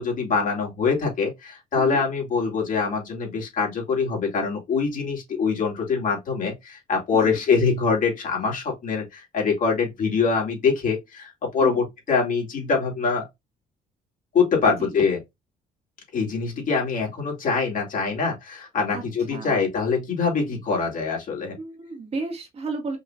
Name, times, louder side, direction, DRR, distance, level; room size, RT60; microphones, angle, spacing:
voice 1, 0.0-13.3 14.3-15.2 16.1-21.6, left 5 dB, 50° left, 2.6 m, -24 dB
voice 2, 7.1-7.4 11.6-11.9 14.7-15.0 18.9-19.0 19.3-19.6 21.6-23.0, right 3 dB, 35° right, 1.7 m, -33 dB
5.3 x 2.9 x 2.5 m
cardioid pair, 110°, 17 cm